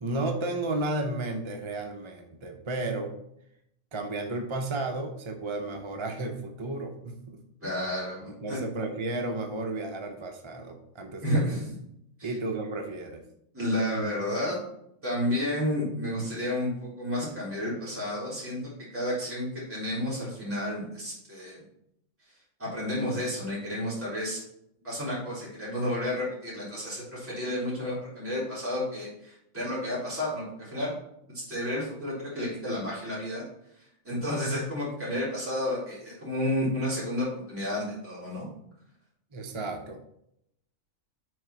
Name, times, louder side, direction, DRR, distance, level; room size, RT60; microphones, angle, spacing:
voice 1, 0.0-3.1 3.9-7.4 8.3-11.5 12.2-13.2 39.3-40.0, right 2 dB, 40° right, 4 dB, 0.4 m, -33 dB
voice 2, 7.6-8.6 11.2-11.8 12.2-12.3 13.5-14.6 15.0-18.6 18.9-21.6 22.6-24.4 24.8-30.9 31.3-33.4 33.8-38.5, left 1 dB, 10° right, -9 dB, 3.1 m, -31 dB
6.4 x 4.4 x 5.7 m, 0.76 s
omnidirectional pair, 1.4 m